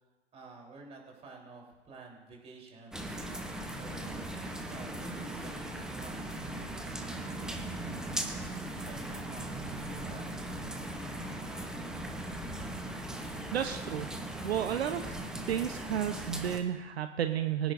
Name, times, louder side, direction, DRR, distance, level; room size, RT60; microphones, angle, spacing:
voice 1, 0.3-3.3 3.7-7.6 8.0-11.3, right 3 dB, 15° right, -1 dB, 3.6 m, -52 dB
sound 1, 2.9-16.6, right 1 dB, ahead, 0.8 m, -39 dB
voice 2, 13.5-14.1 14.4-15.1 15.5-17.7, right 10 dB, 60° right, 8 dB, 0.8 m, -32 dB
23.5 x 10.0 x 2.6 m, 1.2 s
hypercardioid pair, 130°, 35 cm